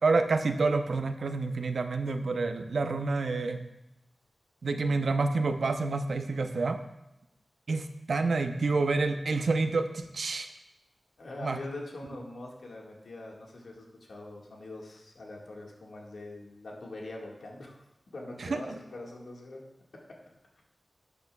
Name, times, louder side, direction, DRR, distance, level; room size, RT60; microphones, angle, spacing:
voice 1, 0.0-3.6 4.6-6.8 7.7-10.5 11.4-11.6 18.4-18.8, right 3 dB, 75° right, 7 dB, 0.7 m, -28 dB
voice 2, 11.2-17.8 18.1-19.6, left 2 dB, 80° left, -1 dB, 1.7 m, -43 dB
12.0 x 8.3 x 2.3 m, 0.90 s
wide cardioid pair, 95°, 0 cm